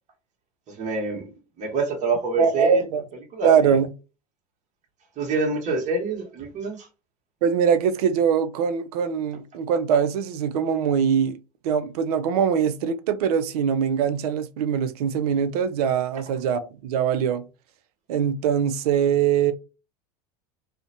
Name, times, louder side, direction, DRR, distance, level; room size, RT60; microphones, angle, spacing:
voice 1, 0.7-2.8 3.3-3.8 5.2-6.9, right 3 dB, 35° right, 1.0 m, -27 dB
voice 2, 2.4-3.0 3.4-3.9 7.4-11.4 11.6-17.5 18.1-19.5, right 7 dB, 70° right, 0.4 m, -22 dB
2.4 x 2.1 x 2.7 m
hypercardioid pair, 90°, 20 cm